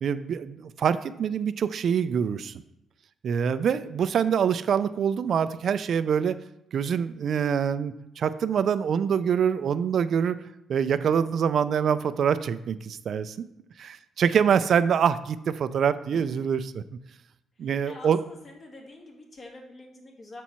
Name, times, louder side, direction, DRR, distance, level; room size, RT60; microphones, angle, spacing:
voice 1, 0.0-2.6 3.2-6.4 6.7-10.4 10.7-13.4 13.8-16.8 17.6-18.2, right 7 dB, 60° right, 13 dB, 0.3 m, -25 dB
voice 2, 16.1-16.4 17.8-20.4, left 2 dB, 45° left, 0 dB, 1.7 m, -46 dB
6.9 x 4.5 x 4.3 m, 0.83 s
cardioid pair, 90°, 0 cm